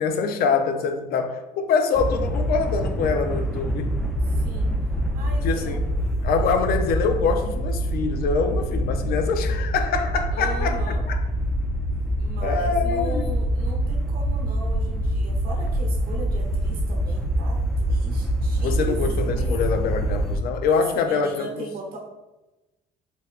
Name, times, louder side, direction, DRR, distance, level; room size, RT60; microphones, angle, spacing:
voice 1, 0.0-3.9 5.4-5.8 6.2-10.8 11.1-11.2 12.4-13.3 18.6-21.5, left 5 dB, 65° left, 6 dB, 0.4 m, -24 dB
sound 1, 1.9-20.4, right 1 dB, ahead, 0.3 m, -25 dB
voice 2, 4.3-4.7 5.1-5.9 10.3-11.0 12.2-19.6 20.7-22.0, right 1 dB, 60° right, 0 dB, 0.9 m, -38 dB
4.1 x 2.2 x 2.4 m, 1.1 s
cardioid pair, 110°, 17 cm